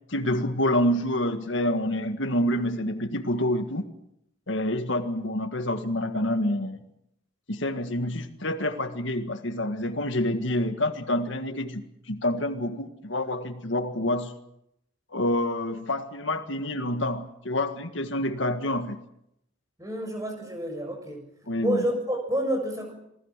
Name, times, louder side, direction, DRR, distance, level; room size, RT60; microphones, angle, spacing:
voice 1, 0.1-3.8 4.5-6.8 7.5-14.3 15.1-19.0 21.5-21.8, left 1 dB, 70° left, 7 dB, 1.8 m, -27 dB
voice 2, 19.8-21.2 21.6-22.9, right 1 dB, 15° right, 3 dB, 6.9 m, -29 dB
28.0 x 19.5 x 7.5 m, 0.78 s
head